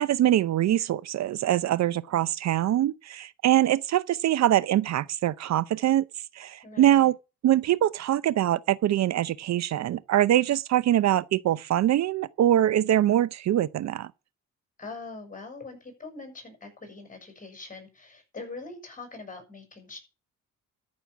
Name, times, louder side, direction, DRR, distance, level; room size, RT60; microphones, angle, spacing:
voice 1, 0.0-6.0 6.4-7.1 7.4-14.1, right 12 dB, 60° right, 0.7 m, -23 dB
voice 2, 6.6-7.1 14.8-20.0, left 3 dB, 25° left, 6.7 m, -42 dB
13.5 x 6.4 x 7.1 m
cardioid pair, 90°, 30 cm